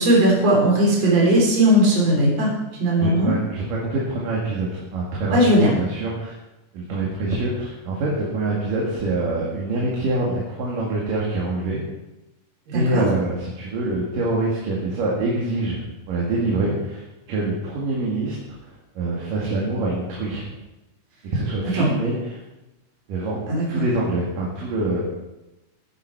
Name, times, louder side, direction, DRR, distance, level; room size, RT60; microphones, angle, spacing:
voice 1, 0.0-2.5 2.8-3.3 5.3-5.7 12.7-13.0 21.8-21.9 23.5-23.8, right 1 dB, 50° right, -4 dB, 4.9 m, -18 dB
voice 2, 3.0-6.3 6.7-11.8 12.7-20.4 21.3-22.4 23.1-25.0, right 2 dB, 90° right, -4 dB, 3.8 m, -25 dB
16.0 x 10.0 x 4.7 m, 1.0 s
omnidirectional pair, 3.7 m